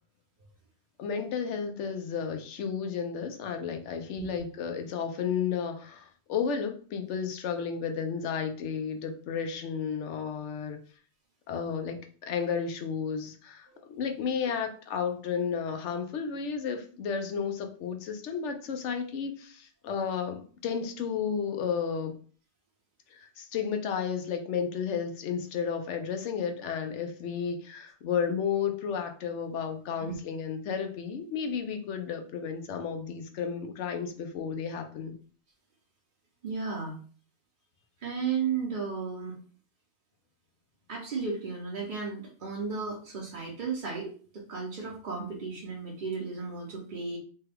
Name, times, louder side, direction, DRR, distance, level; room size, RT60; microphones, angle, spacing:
voice 1, 1.0-10.8 11.5-22.1 23.1-35.1, left 6 dB, 80° left, 6 dB, 0.9 m, -32 dB
voice 2, 36.4-37.0 38.0-39.4 40.9-47.2, right 5 dB, 50° right, -2 dB, 0.8 m, -34 dB
3.3 x 2.2 x 3.3 m, 0.42 s
omnidirectional pair, 1.2 m